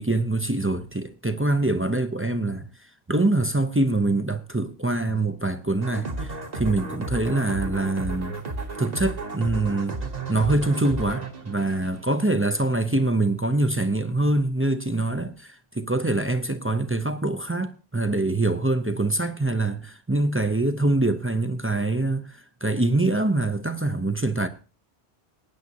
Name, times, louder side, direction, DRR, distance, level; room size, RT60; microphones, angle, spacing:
voice 1, 0.0-2.7 3.1-8.3 8.8-10.0 10.3-24.5, right 2 dB, 15° right, 0.4 m, -24 dB
sound 1, 5.8-12.6, right 3 dB, 40° right, 1.2 m, -33 dB
19.0 x 9.5 x 2.8 m
omnidirectional pair, 1.1 m